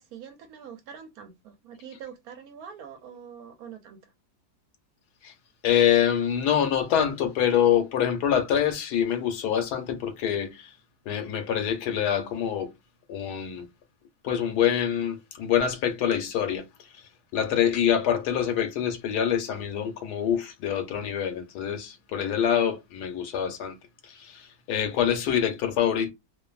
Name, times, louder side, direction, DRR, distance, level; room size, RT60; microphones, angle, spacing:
voice 1, 0.0-4.1 17.9-18.0, right 7 dB, 75° right, 1.1 m, -44 dB
voice 2, 5.6-10.7 11.1-12.7 13.1-13.7 14.2-16.7 17.3-23.8 24.0-26.1, left 9 dB, 85° left, 1.2 m, -25 dB
2.6 x 2.5 x 2.3 m
omnidirectional pair, 1.7 m